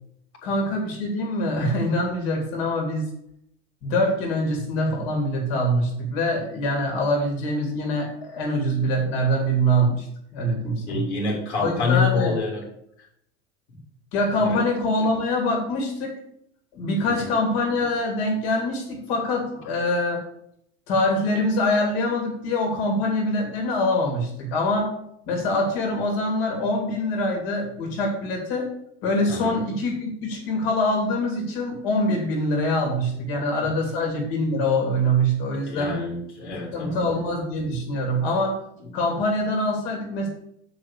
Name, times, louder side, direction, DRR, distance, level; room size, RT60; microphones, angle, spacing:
voice 1, 0.4-3.1 3.8-10.1 10.3-11.0 11.6-12.3 14.1-16.1 16.7-20.2 20.9-24.9 25.3-28.7 29.0-35.9 36.7-38.5 38.9-40.3, left 1 dB, 65° left, 1 dB, 2.9 m, -24 dB
voice 2, 10.9-12.6 14.4-14.6 17.0-17.3 29.3-29.6 33.3-33.7 35.7-37.2, left 4 dB, 85° left, -1 dB, 3.2 m, -27 dB
7.1 x 4.9 x 7.0 m, 0.72 s
hypercardioid pair, 100°, 34 cm